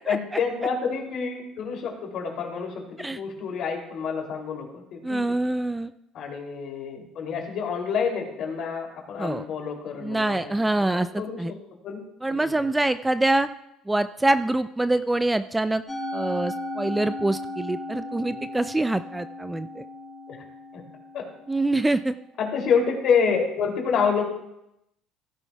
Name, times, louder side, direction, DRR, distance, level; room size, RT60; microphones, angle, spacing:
voice 1, 0.1-5.2 6.1-11.6 11.8-12.0 12.3-12.7 18.3-18.5 20.3-20.4 20.7-20.8 21.1-21.2 22.4-24.2, left 6 dB, 60° left, 1 dB, 2.8 m, -28 dB
voice 2, 5.0-5.9 9.2-9.4 10.0-11.5 12.2-13.5 13.9-15.8 16.1-19.8 21.5-22.1, right 2 dB, 10° right, 12 dB, 0.4 m, -25 dB
Musical instrument, 15.9-22.3, left 1 dB, 15° left, 3.4 m, -36 dB
16.0 x 10.5 x 2.3 m, 0.82 s
supercardioid pair, 105°, 0 cm